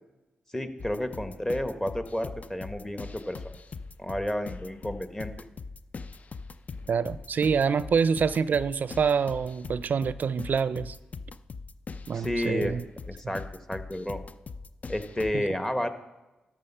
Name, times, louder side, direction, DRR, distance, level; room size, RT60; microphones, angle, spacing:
voice 1, 0.5-3.5 4.0-5.3 12.1-12.8 13.1-14.2 14.9-15.9, left 1 dB, 15° left, 1.3 m, -31 dB
sound 1, 0.8-15.3, left 4 dB, 45° left, 0.6 m, -42 dB
voice 2, 6.9-11.0 12.1-12.8 15.3-15.4, right 6 dB, 60° right, 0.4 m, -26 dB
13.0 x 6.2 x 5.6 m
supercardioid pair, 50°, 3 cm